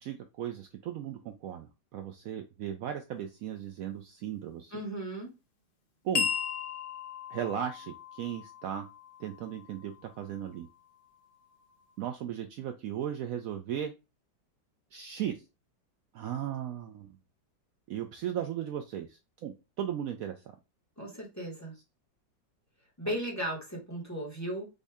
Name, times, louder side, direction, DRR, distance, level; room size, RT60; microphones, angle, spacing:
voice 1, 0.0-4.8 6.0-6.3 7.3-8.9 9.2-10.7 12.0-13.9 14.9-15.4 16.1-17.2 17.9-20.4 23.0-23.1, right 10 dB, 85° right, 0.7 m, -36 dB
voice 2, 4.7-5.3 21.0-21.7 23.0-24.7, right 1 dB, 10° left, 1.3 m, -36 dB
sound 1, 6.1-10.8, left 7 dB, 40° left, 0.8 m, -37 dB
5.3 x 2.7 x 3.5 m
omnidirectional pair, 2.0 m